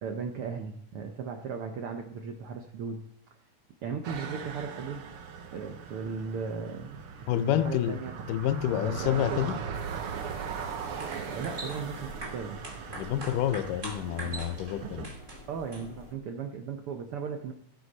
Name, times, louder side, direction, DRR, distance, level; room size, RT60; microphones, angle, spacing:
voice 1, 0.0-3.1 3.8-5.1 5.5-8.1 8.7-9.5 11.3-12.6 15.5-17.5, right 5 dB, 75° right, 1.2 m, -37 dB
sound 1, 4.0-15.1, right 6 dB, 60° right, 1.5 m, -39 dB
voice 2, 7.3-8.0 8.3-9.6 13.0-15.1, left 11 dB, 85° left, 2.2 m, -28 dB
sound 2, 9.7-16.2, left 2 dB, 45° left, 1.7 m, -52 dB
sound 3, 10.7-16.1, right 2 dB, 25° right, 2.5 m, -43 dB
16.5 x 8.2 x 4.2 m
omnidirectional pair, 3.7 m